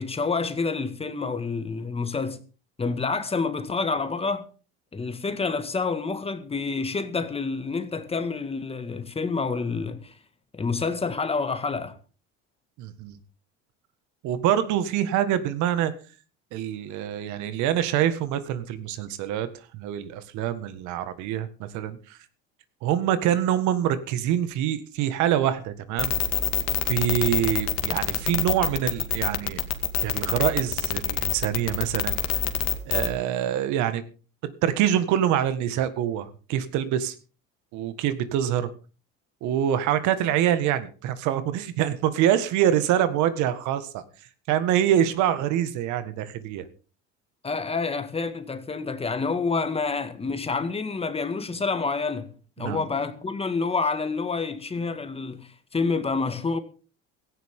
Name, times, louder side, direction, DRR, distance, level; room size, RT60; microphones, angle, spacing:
voice 1, 0.0-2.4 2.8-4.5 4.9-10.1 10.5-12.0 47.4-52.3 52.6-56.6, left 4 dB, 20° left, 1.9 m, -28 dB
voice 2, 12.8-13.1 14.2-15.9 16.5-19.5 19.7-22.2 22.8-26.1 26.7-29.6 30.0-32.2 32.9-34.0 34.6-37.2 37.7-38.7 39.4-44.0 44.5-46.7 52.6-52.8, right 10 dB, 70° right, 1.8 m, -25 dB
sound 1, 26.0-33.1, left 11 dB, 55° left, 2.2 m, -25 dB
17.0 x 14.5 x 3.8 m
cardioid pair, 120°, 31 cm